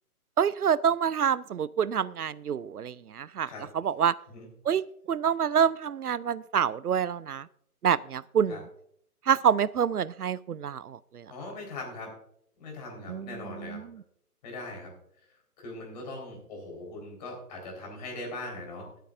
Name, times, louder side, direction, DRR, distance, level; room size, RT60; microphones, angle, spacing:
voice 1, 0.4-3.5 3.8-4.1 4.7-4.8 5.1-7.4 7.8-8.6 9.3-11.0 13.1-13.3, right 8 dB, 75° right, 20 dB, 0.5 m, -26 dB
voice 2, 11.3-12.1 12.6-13.8 14.4-14.9 15.6-19.0, left 2 dB, 30° left, 1 dB, 4.0 m, -40 dB
21.0 x 9.2 x 2.5 m, 0.70 s
figure-of-eight pair, 140°, 46 cm